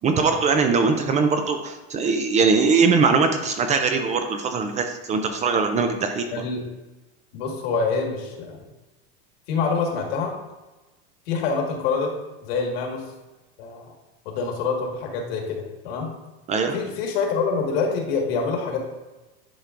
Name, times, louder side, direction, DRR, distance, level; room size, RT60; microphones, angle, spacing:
voice 1, 0.0-6.4 16.5-16.7, right 4 dB, 20° right, 6 dB, 0.4 m, -21 dB
voice 2, 6.3-6.6 7.3-8.6 9.5-10.3 11.3-12.1 12.5-13.0 13.6-13.9 14.2-16.1 16.7-18.8, left 5 dB, 65° left, 2 dB, 1.7 m, -26 dB
10.0 x 4.4 x 2.5 m, 1.1 s
supercardioid pair, 135°, 33 cm